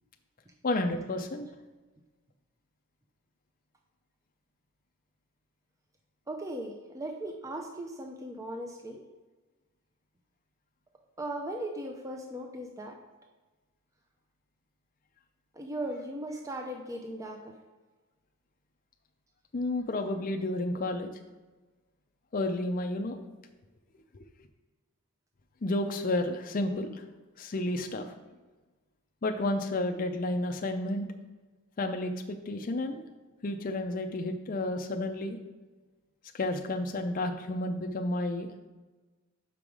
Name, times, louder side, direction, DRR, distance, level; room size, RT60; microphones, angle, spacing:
voice 1, 0.6-1.5 19.5-21.1 22.3-23.2 24.1-24.2 25.6-27.1 27.4-28.1 29.2-31.1 31.8-33.0 33.4-35.4 36.3-38.5, left 2 dB, 40° left, 4 dB, 0.5 m, -31 dB
voice 2, 6.3-9.0 11.2-13.0 15.5-17.5, right 1 dB, 15° right, 2 dB, 0.5 m, -38 dB
5.9 x 5.4 x 4.7 m, 1.2 s
head